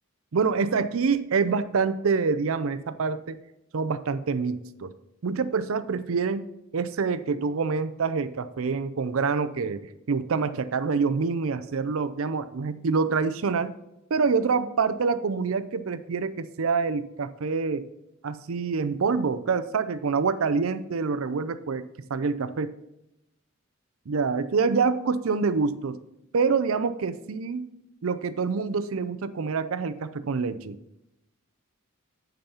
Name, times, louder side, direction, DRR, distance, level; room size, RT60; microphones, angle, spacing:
voice 1, 0.3-3.4 3.7-4.9 5.2-6.4 6.7-13.7 14.1-17.9 18.2-21.8 22.1-22.7 24.1-26.0 26.3-27.7 28.0-30.8, right 5 dB, 75° right, 13 dB, 0.5 m, -26 dB
8.0 x 5.2 x 5.6 m, 0.89 s
head